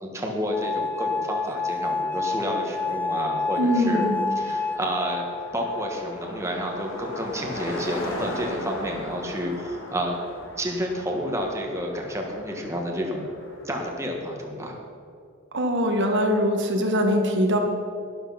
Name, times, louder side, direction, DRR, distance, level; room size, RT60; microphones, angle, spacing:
voice 1, 0.0-4.1 4.3-5.2 5.5-10.1 10.6-13.3 13.6-14.8, equal, 15° right, 0 dB, 1.5 m, -30 dB
sound 1, 0.5-7.5 8.3-8.9, left 4 dB, 10° left, 0.4 m, -30 dB
Car passing by, 2.7-2.8 3.0-14.0, left 1 dB, 65° left, 3.6 m, -39 dB
voice 2, 3.6-4.2 15.5-17.6, equal, 55° right, 3 dB, 1.5 m, -22 dB
12.0 x 11.0 x 5.8 m, 2.4 s
head